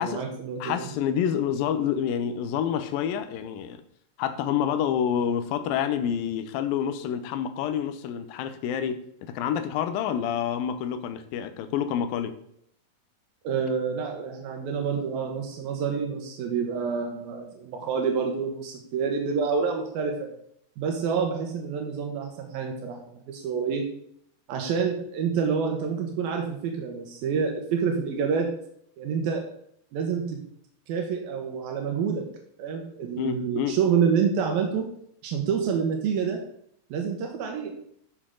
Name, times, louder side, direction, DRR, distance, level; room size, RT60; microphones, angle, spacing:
voice 1, 0.0-0.9 13.4-20.3 20.8-24.0 24.5-28.6 29.0-29.4 29.9-30.4 30.9-32.3 32.6-34.9 35.2-36.4 36.9-37.8, right 6 dB, 85° right, 2 dB, 3.1 m, -28 dB
voice 2, 0.6-3.8 4.2-12.3 33.2-33.8, left 8 dB, 80° left, 9 dB, 2.6 m, -28 dB
13.0 x 6.9 x 3.8 m, 0.69 s
omnidirectional pair, 4.1 m